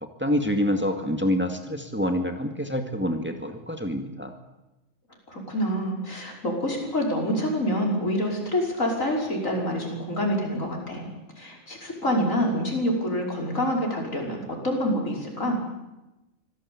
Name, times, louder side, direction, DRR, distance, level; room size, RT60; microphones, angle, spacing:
voice 1, 0.0-4.3, equal, 10° right, 5 dB, 2.2 m, -27 dB
voice 2, 5.3-11.1 11.4-15.6, equal, 90° left, 0 dB, 5.9 m, -27 dB
25.5 x 17.5 x 8.6 m, 0.99 s
omnidirectional pair, 1.3 m